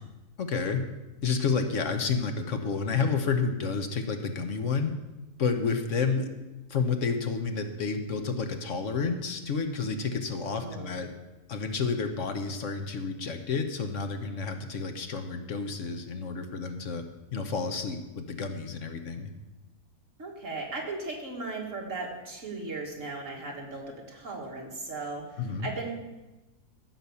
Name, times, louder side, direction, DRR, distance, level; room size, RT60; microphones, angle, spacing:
voice 1, 0.4-0.8 1.2-4.9 5.4-6.3 6.7-11.1 11.5-17.0 17.3-19.3 25.4-25.7, left 5 dB, 65° left, 6 dB, 1.3 m, -30 dB
voice 2, 10.5-11.0 20.2-25.9, right 3 dB, 60° right, -1 dB, 2.5 m, -37 dB
14.5 x 6.0 x 7.0 m, 1.1 s
omnidirectional pair, 1.5 m